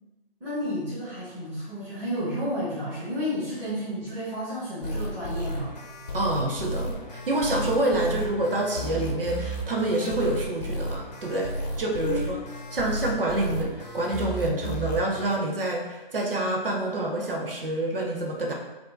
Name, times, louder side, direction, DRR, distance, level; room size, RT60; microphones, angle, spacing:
voice 1, 0.4-5.7 12.0-12.3, equal, 5° right, -13 dB, 1.3 m, -31 dB
sound 1, 4.8-15.4, equal, 45° left, 0.7 m, -33 dB
voice 2, 6.1-12.4 12.7-18.5, right 1 dB, 70° right, 0 dB, 0.9 m, -27 dB
5.0 x 2.7 x 3.8 m, 1.1 s
figure-of-eight pair, 155°, 29 cm